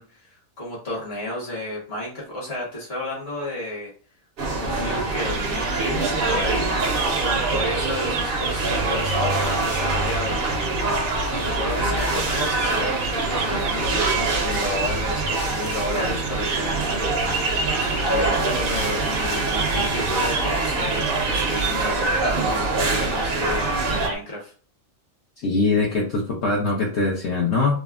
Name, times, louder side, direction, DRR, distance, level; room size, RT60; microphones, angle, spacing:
voice 1, 0.0-3.9 4.5-6.7 7.2-10.4 11.3-17.1 18.0-22.2 22.4-24.5, left 1 dB, 45° left, -4 dB, 1.3 m, -32 dB
sound 1, 4.4-24.1, right 2 dB, 50° right, 0.7 m, -24 dB
sound 2, 5.2-24.2, right 5 dB, 70° right, 1.1 m, -31 dB
voice 2, 25.4-27.8, left 3 dB, 60° left, -3 dB, 0.8 m, -22 dB
3.4 x 2.0 x 2.4 m, 0.41 s
omnidirectional pair, 1.5 m